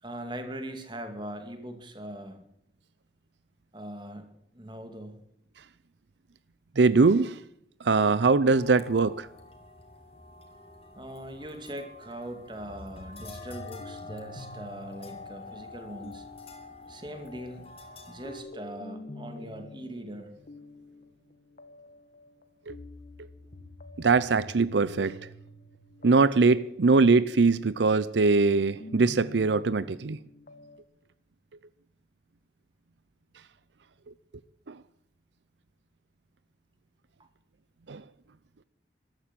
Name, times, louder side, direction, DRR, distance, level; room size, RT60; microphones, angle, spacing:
voice 1, 0.0-2.4 3.7-5.2 11.0-16.3 16.9-17.7 18.1-20.3 37.2-37.3, right 1 dB, 25° right, 2.4 m, -41 dB
voice 2, 6.8-7.4 7.8-9.3 22.7-22.8 24.0-25.2 26.0-30.2 34.7-34.8 37.9-38.0, right 4 dB, 80° right, 0.6 m, -22 dB
sound 1, 8.4-18.4, left 3 dB, 35° left, 3.0 m, -47 dB
sound 2, 12.6-30.8, left 2 dB, 50° left, 1.4 m, -48 dB
14.0 x 13.0 x 7.6 m
head